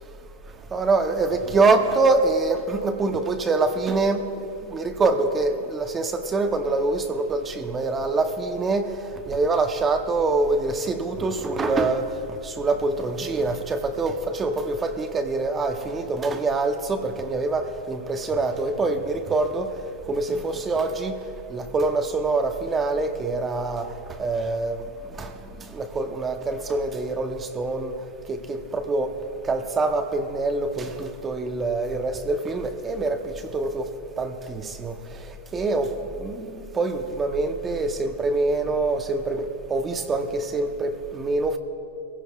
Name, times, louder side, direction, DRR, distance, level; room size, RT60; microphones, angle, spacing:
voice 1, 0.7-9.0 9.3-19.7 20.1-21.2 21.5-23.9 24.2-24.9 25.2-25.3 25.6-27.9 28.3-29.2 29.5-41.6, right 3 dB, 20° right, 7 dB, 0.8 m, -25 dB
22.0 x 16.0 x 2.4 m, 2.7 s
hypercardioid pair, 135°, 0 cm